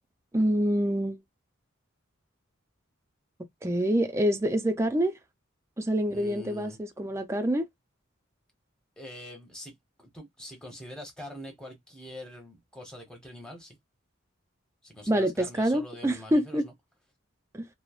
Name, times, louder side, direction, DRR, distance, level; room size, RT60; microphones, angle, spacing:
voice 1, 0.3-1.2 3.6-5.1 5.8-7.7 15.1-16.7 17.5-17.7, equal, 15° right, 0.3 m, -26 dB
voice 2, 6.1-6.8 9.0-13.8 14.8-16.7, left 1 dB, 5° left, 0.9 m, -44 dB
3.0 x 2.0 x 2.3 m
head